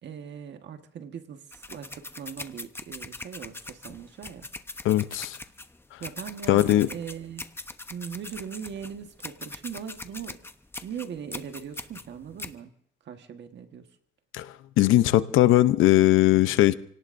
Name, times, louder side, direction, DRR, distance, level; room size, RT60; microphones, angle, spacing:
voice 1, 0.0-4.5 6.0-7.5 7.9-10.4 10.8-12.7 13.0-13.9, right 8 dB, 65° right, 6 dB, 1.5 m, -40 dB
sound 1, 1.5-12.6, left 2 dB, 10° left, 0.9 m, -41 dB
voice 2, 4.8-5.4 6.5-6.9 14.3-16.7, left 15 dB, 90° left, 13 dB, 0.7 m, -20 dB
29.0 x 18.0 x 2.7 m, 0.65 s
cardioid pair, 90°, 20 cm